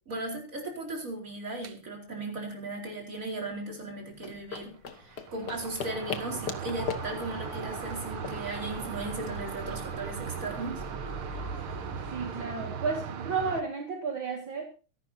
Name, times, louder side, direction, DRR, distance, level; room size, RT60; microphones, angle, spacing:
voice 1, 0.1-10.8, right 2 dB, 35° right, 1 dB, 4.8 m, -37 dB
sound 1, 1.6-1.7 4.5-4.6 4.9-13.6, right 8 dB, 80° right, 2.1 m, -38 dB
sound 2, 4.1-9.3, left 7 dB, 55° left, 1.8 m, -40 dB
Motor vehicle (road) / Siren, 6.8-12.5, left 2 dB, 30° left, 0.9 m, -43 dB
voice 2, 12.1-14.6, right 4 dB, 60° right, 1 dB, 2.9 m, -32 dB
24.0 x 12.0 x 2.8 m, 0.36 s
omnidirectional pair, 2.4 m